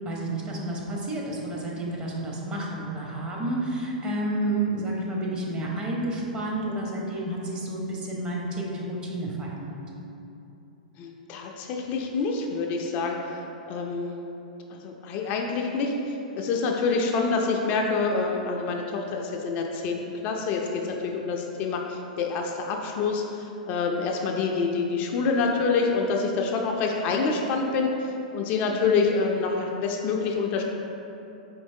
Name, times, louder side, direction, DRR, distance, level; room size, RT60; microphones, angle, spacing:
voice 1, 0.0-9.8, right 1 dB, 25° right, -3 dB, 0.7 m, -30 dB
voice 2, 11.0-14.2 14.7-30.6, left 4 dB, 40° left, 1 dB, 0.3 m, -27 dB
4.4 x 3.0 x 2.7 m, 2.9 s
figure-of-eight pair, 105°, 4 cm